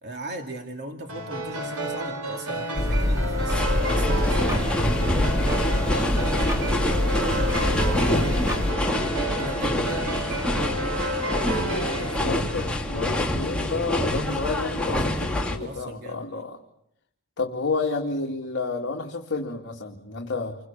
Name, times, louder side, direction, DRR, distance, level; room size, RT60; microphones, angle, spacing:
voice 1, 0.0-8.4 9.4-12.8 15.6-16.5, right 1 dB, 50° right, 3 dB, 2.8 m, -39 dB
sound 1, 1.1-12.2, right 1 dB, 70° right, 3.9 m, -31 dB
sound 2, 2.7-8.7, left 1 dB, 15° right, 3.9 m, -26 dB
sound 3, 3.5-15.6, left 1 dB, 5° left, 3.0 m, -26 dB
voice 2, 5.8-6.3 12.2-16.6 17.4-20.6, left 3 dB, 55° left, 0 dB, 2.3 m, -30 dB
30.0 x 23.0 x 7.4 m, 0.76 s
head